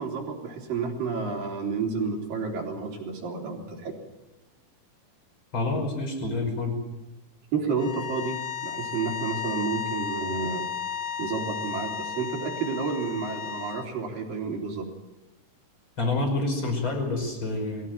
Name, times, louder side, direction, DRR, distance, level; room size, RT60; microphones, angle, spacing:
voice 1, 0.0-3.9 7.5-10.7 11.2-14.9, right 5 dB, 60° right, 1 dB, 5.2 m, -30 dB
voice 2, 5.5-6.8 16.0-17.9, left 2 dB, 30° left, 4 dB, 6.0 m, -28 dB
sound 1, 7.8-13.9, left 8 dB, 65° left, 1.7 m, -34 dB
23.5 x 16.0 x 9.0 m, 1.1 s
omnidirectional pair, 4.7 m